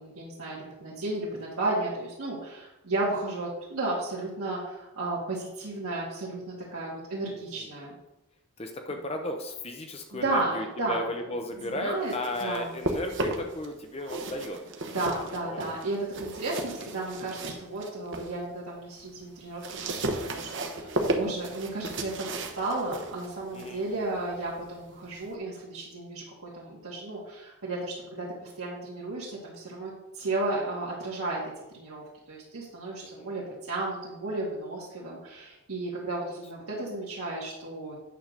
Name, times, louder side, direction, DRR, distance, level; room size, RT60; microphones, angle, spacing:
voice 1, 0.0-8.0 10.1-11.0 11.6-12.1 12.4-12.7 14.9-31.4 31.7-38.0, right 2 dB, 75° right, -8 dB, 1.9 m, -33 dB
voice 2, 7.3-7.7 8.6-14.6 15.4-15.6 16.8-17.1 23.5-23.8 33.0-33.6, left 1 dB, 25° left, 4 dB, 0.7 m, -35 dB
sound 1, 11.8-13.7 14.0-18.3 18.8-25.3, right 2 dB, 55° right, 1.0 m, -34 dB
9.0 x 3.9 x 6.6 m, 0.98 s
head